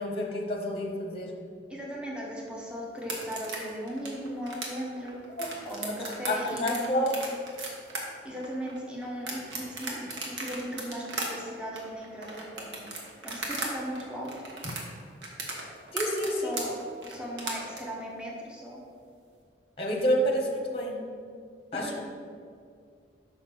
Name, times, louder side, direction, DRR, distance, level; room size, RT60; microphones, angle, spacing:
voice 1, 0.0-1.3 5.4-5.6 6.3-7.1 15.9-16.6 19.8-21.0 21.7-21.9, equal, 35° left, 1 dB, 0.9 m, -29 dB
voice 2, 1.7-5.2 5.6-7.1 8.2-12.9 13.2-14.3 16.4-16.7 17.1-18.8 21.8-22.0, equal, 5° right, -3 dB, 1.0 m, -37 dB
sound 1, 3.0-13.7 13.9-17.8, right 3 dB, 85° right, 1.3 m, -36 dB
5.8 x 4.0 x 6.0 m, 2.2 s
head